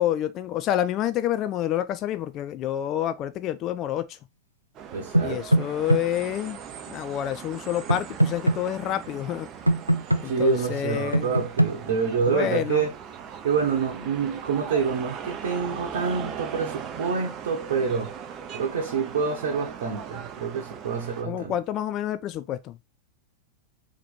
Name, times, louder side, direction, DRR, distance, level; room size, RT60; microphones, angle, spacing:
voice 1, 0.0-4.2 5.2-6.6 6.9-9.5 10.2-11.3 12.3-12.9 21.2-22.8, left 11 dB, 35° left, 0.4 m, -28 dB
sound 1, 4.7-21.2, right 8 dB, 35° right, 0.6 m, -39 dB
voice 2, 4.9-5.4 10.2-12.9 13.4-18.1 18.5-21.5, right 5 dB, 60° right, 1.0 m, -27 dB
sound 2, 5.1-6.0 7.9-8.6 9.7-10.2 11.1-11.7, right 1 dB, 85° right, 0.4 m, -20 dB
4.1 x 3.0 x 4.2 m
figure-of-eight pair, 90°, 0 cm